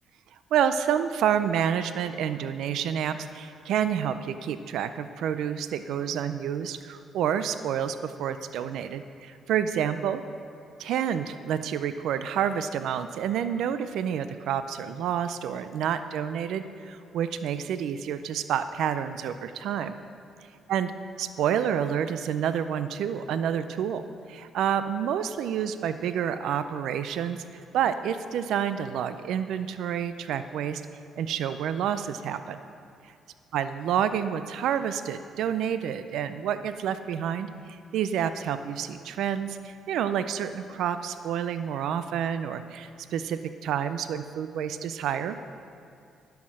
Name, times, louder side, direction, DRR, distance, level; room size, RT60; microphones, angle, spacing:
voice 1, 0.5-10.2 10.8-19.9 20.7-20.9 21.2-24.0 24.3-30.8 31.2-32.6 33.5-45.4, right 9 dB, 80° right, 11 dB, 0.4 m, -29 dB
10.5 x 5.8 x 6.2 m, 2.4 s
cardioid pair, 90°, 0 cm